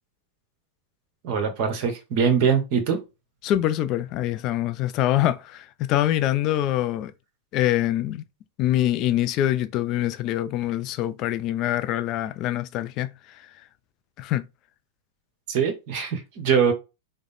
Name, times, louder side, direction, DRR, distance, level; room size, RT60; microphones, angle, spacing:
voice 1, 1.2-3.0 15.5-16.7, right 6 dB, 55° right, 1.2 m, -22 dB
voice 2, 3.4-7.1 7.5-8.2 8.6-13.1 14.2-14.4, left 13 dB, 40° left, 0.4 m, -24 dB
3.7 x 2.1 x 3.5 m
hypercardioid pair, 120°, 0 cm